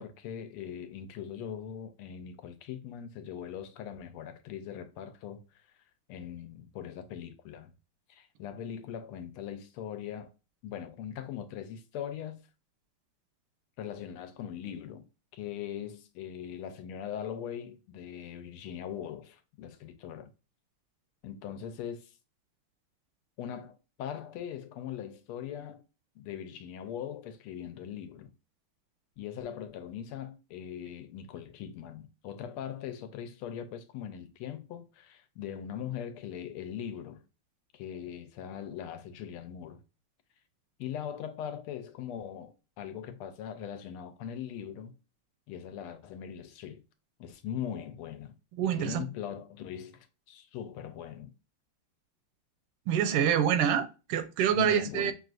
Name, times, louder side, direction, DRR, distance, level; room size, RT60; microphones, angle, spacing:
voice 1, 0.0-5.4 6.1-7.7 8.1-10.3 10.6-12.4 13.8-15.1 15.3-20.3 21.2-22.1 23.4-25.8 26.2-28.3 29.2-37.2 37.7-39.8 40.8-44.9 45.5-46.8 47.2-48.4 48.6-51.3 54.5-55.1, left 9 dB, 80° left, 1.5 m, -40 dB
voice 2, 48.6-49.0 52.9-55.1, right 9 dB, 85° right, 1.6 m, -26 dB
6.1 x 2.4 x 2.4 m
omnidirectional pair, 2.4 m